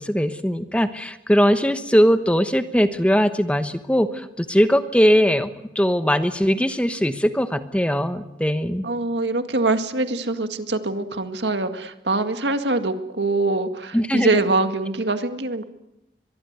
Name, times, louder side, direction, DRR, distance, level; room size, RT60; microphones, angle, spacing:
voice 1, 0.0-5.5 5.7-8.8 13.9-14.4, equal, 5° left, 10 dB, 1.0 m, -20 dB
voice 2, 8.8-15.6, right 2 dB, 80° right, 8 dB, 2.0 m, -23 dB
23.5 x 23.0 x 8.2 m, 0.90 s
head